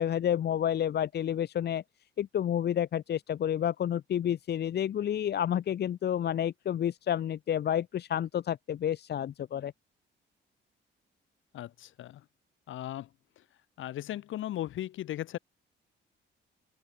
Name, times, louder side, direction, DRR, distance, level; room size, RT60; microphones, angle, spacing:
voice 1, 0.0-1.8 2.2-9.7, left 10 dB, 55° left, 1.0 m, -30 dB
voice 2, 11.5-12.2 12.7-13.1 13.8-15.4, left 13 dB, 80° left, 6.6 m, -37 dB
open air
cardioid pair, 90°, 20 cm